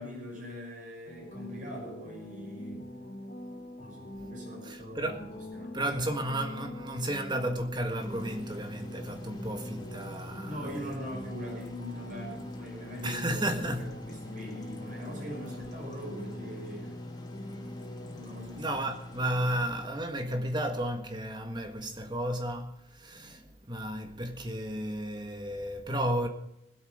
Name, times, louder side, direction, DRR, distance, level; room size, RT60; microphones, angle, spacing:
voice 1, 0.0-2.9 3.8-5.8 10.5-17.1 18.1-18.8, equal, 50° right, 5.9 m, -42 dB
sound 1, 1.1-18.2, left 1 dB, 50° left, 2.3 m, -44 dB
voice 2, 4.7-5.2 5.7-11.0 13.0-13.9 18.6-22.7 23.0-23.4 23.7-26.3, right 1 dB, 25° right, 1.7 m, -33 dB
Marine filter, 8.0-19.9, left 1 dB, 25° left, 3.0 m, -44 dB
21.5 x 8.4 x 5.1 m
head